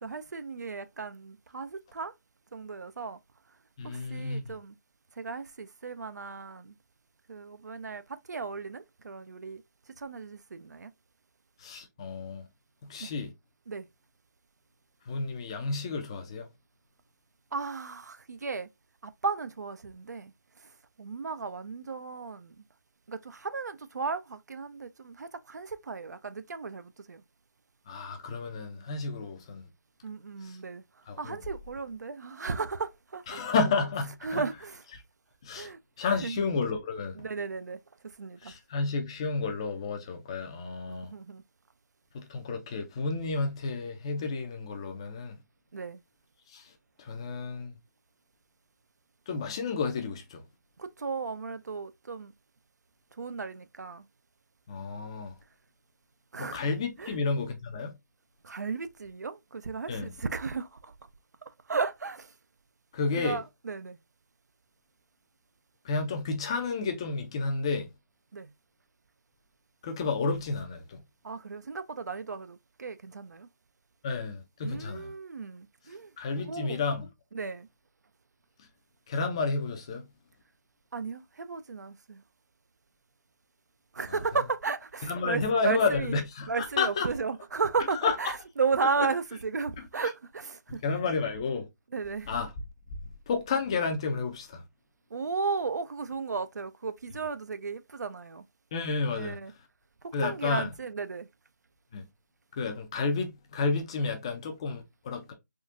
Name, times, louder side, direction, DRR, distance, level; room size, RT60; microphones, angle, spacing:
voice 1, 0.0-2.1 2.5-3.2 3.8-4.8 5.2-6.8 7.3-10.9 13.0-13.1 13.7-13.9 17.5-18.7 19.0-22.7 23.1-27.2 30.0-33.4 34.2-34.8 35.5-35.8 36.2-36.4 37.1-38.5 40.9-41.4 45.7-46.0 50.8-52.3 53.1-54.1 56.3-56.6 57.0-57.2 58.4-61.1 61.4-62.4 63.2-64.0 68.3-68.5 71.2-73.5 74.6-76.1 76.5-76.8 77.3-77.7 80.9-82.2 83.9-86.2 86.5-90.8 91.9-92.3 95.1-98.5 99.1-99.5 100.0-101.3, right 4 dB, 70° right, 0.4 m, -35 dB
voice 2, 3.8-4.5 11.6-12.5 12.8-13.3 15.1-16.5 27.9-29.6 30.4-30.6 31.1-31.4 33.3-34.4 35.4-37.2 38.4-41.1 42.1-45.4 46.5-46.7 47.0-47.7 49.3-50.4 54.7-55.3 56.4-57.9 59.9-60.1 62.9-63.4 65.8-67.9 69.8-71.0 74.0-75.1 76.2-77.1 78.6-78.7 79.1-80.0 85.1-87.1 88.0-88.2 90.7-91.7 92.3-92.5 93.3-94.6 98.7-99.4 100.1-100.7 101.9-102.1 102.6-105.3, left 4 dB, 15° left, 0.4 m, -31 dB
3.6 x 2.3 x 2.5 m
figure-of-eight pair, 160°, 10 cm